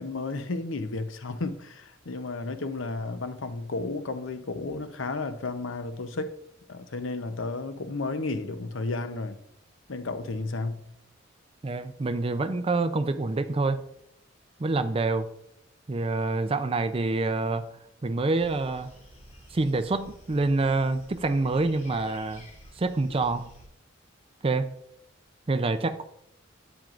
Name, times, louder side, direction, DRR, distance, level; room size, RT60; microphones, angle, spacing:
voice 1, 0.0-6.3 6.7-9.4 9.9-10.8, left 3 dB, 90° left, 0.7 m, -33 dB
voice 2, 11.6-13.8 14.6-15.3 15.9-17.7 18.0-18.9 19.5-22.5 22.8-23.5 24.4-24.7 25.5-26.0, right 3 dB, 30° right, 0.5 m, -26 dB
sound 1, 18.3-23.7, equal, 35° left, 3.6 m, -51 dB
10.5 x 8.9 x 2.5 m
head